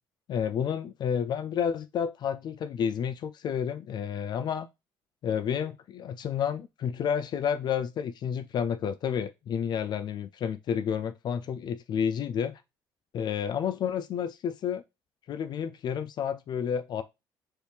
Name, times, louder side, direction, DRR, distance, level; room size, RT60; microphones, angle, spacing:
voice 1, 0.3-4.7 5.2-12.6 13.1-14.8 15.3-17.0, left 8 dB, 50° left, 0.3 m, -30 dB
4.5 x 2.8 x 3.3 m
cardioid pair, 105°, 9 cm